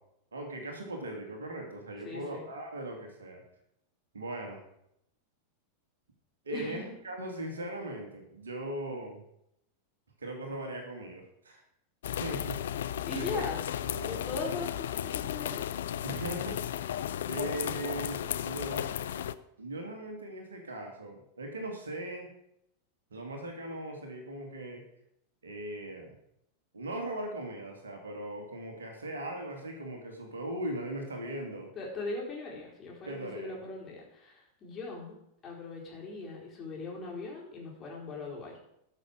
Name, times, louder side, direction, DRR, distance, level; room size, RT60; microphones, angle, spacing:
voice 1, 0.3-3.4 4.1-4.6 6.4-9.2 10.2-11.6 12.2-12.6 13.1-13.4 13.8-14.2 16.0-18.9 19.6-22.3 23.1-24.8 25.4-26.2 26.7-31.7 33.1-33.6, right 1 dB, 70° right, 3 dB, 2.5 m, -39 dB
voice 2, 2.0-2.5 6.5-6.8 13.0-13.6 14.0-15.8 31.8-35.1 35.4-38.5, left 3 dB, 25° left, -3 dB, 4.2 m, -39 dB
sound 1, 12.0-19.3, left 10 dB, 60° left, 0.5 m, -34 dB
13.0 x 6.4 x 6.4 m, 0.78 s
figure-of-eight pair, 90°, 0 cm